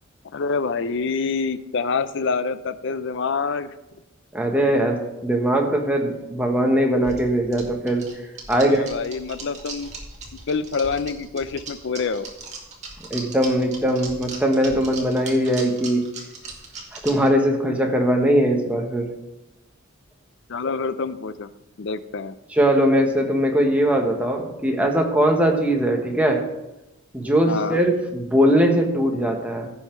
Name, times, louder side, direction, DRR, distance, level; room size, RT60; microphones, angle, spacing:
voice 1, 0.3-3.7 8.6-9.9 10.5-12.3 20.5-21.5 21.8-22.3 27.5-27.8, left 4 dB, 60° left, 14 dB, 0.5 m, -26 dB
voice 2, 4.3-5.0 5.2-8.1 8.5-8.8 13.1-16.0 16.9-19.1 22.5-26.4 27.1-29.7, equal, 5° right, 1 dB, 1.4 m, -20 dB
sound 1, 7.0-17.3, right 3 dB, 35° right, 2.0 m, -38 dB
15.5 x 5.6 x 4.6 m, 0.96 s
head